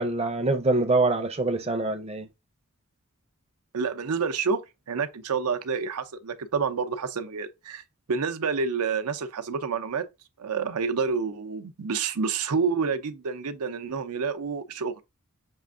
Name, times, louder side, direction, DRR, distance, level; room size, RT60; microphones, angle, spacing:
voice 1, 0.0-2.3, right 2 dB, 25° right, 0.5 m, -24 dB
voice 2, 3.7-10.1 10.4-14.9, right 5 dB, 85° right, 0.6 m, -28 dB
6.2 x 2.5 x 2.4 m
head